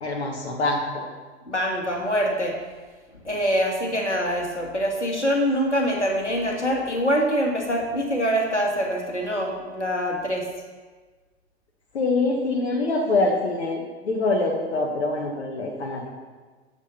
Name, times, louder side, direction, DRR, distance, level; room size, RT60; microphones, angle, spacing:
voice 1, 0.0-1.0 11.9-16.0, left 2 dB, 65° left, 1 dB, 1.5 m, -24 dB
voice 2, 1.5-2.5 3.2-10.4, equal, 90° left, 0 dB, 2.0 m, -24 dB
9.7 x 7.2 x 5.7 m, 1.4 s
figure-of-eight pair, 90°, 34 cm